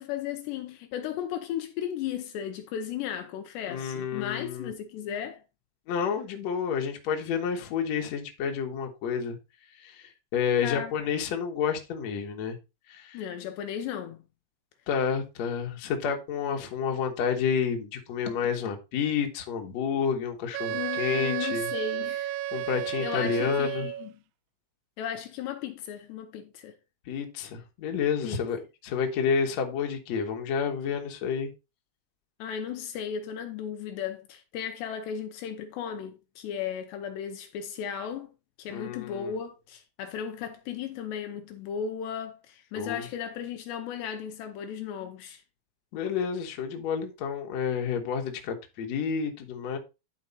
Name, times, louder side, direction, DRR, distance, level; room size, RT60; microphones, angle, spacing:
voice 1, 0.0-5.4 10.6-10.9 13.1-14.2 20.7-22.4 23.0-24.1 25.0-26.8 28.2-28.4 32.4-38.3 38.6-45.4, left 8 dB, 75° left, 2.9 m, -35 dB
voice 2, 3.7-4.7 5.9-9.4 9.8-12.6 12.9-13.2 14.9-21.7 22.5-23.9 27.1-31.5 38.7-39.3 42.7-43.0 45.9-49.8, left 6 dB, 55° left, 2.1 m, -30 dB
Wind instrument woodwind instrument, 20.5-24.1, right 12 dB, 85° right, 2.9 m, -32 dB
11.5 x 4.9 x 4.1 m
omnidirectional pair, 5.3 m